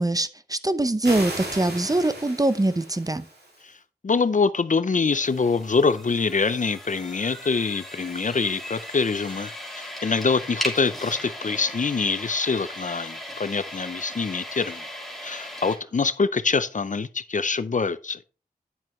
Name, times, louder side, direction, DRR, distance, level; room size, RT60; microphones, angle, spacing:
voice 1, 0.0-3.2, right 2 dB, 20° right, 0.7 m, -23 dB
sound 1, 1.0-3.6, right 1 dB, 85° right, 2.5 m, -36 dB
voice 2, 4.0-14.8 15.2-18.2, left 4 dB, 50° left, 0.5 m, -25 dB
sound 2, 5.0-15.8, equal, ahead, 3.0 m, -37 dB
9.8 x 7.4 x 3.1 m
wide cardioid pair, 45°, 16 cm